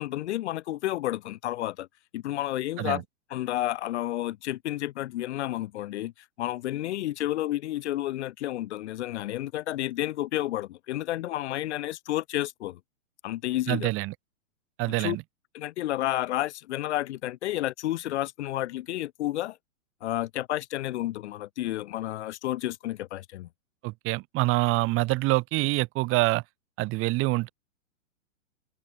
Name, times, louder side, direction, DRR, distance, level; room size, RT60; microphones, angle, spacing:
voice 1, 0.0-1.9 2.1-3.0 3.3-6.1 6.4-12.8 13.2-13.9 15.0-15.2 15.5-19.6 20.0-23.5, left 14 dB, 55° left, 2.2 m, -31 dB
voice 2, 13.7-14.1 14.8-15.2 23.8-26.4 26.8-27.5, right 21 dB, 30° right, 4.9 m, -26 dB
open air
hypercardioid pair, 145°, 41 cm